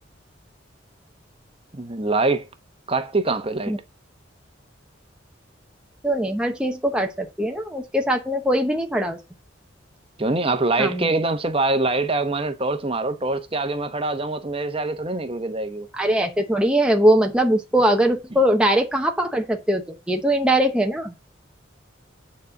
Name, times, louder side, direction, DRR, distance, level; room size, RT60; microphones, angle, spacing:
voice 1, 1.7-2.5 2.9-3.7 10.2-15.9, right 2 dB, 30° right, 1.0 m, -24 dB
voice 2, 6.0-9.2 10.8-11.1 16.0-21.1, right 1 dB, 5° right, 0.9 m, -21 dB
9.4 x 4.3 x 6.3 m
head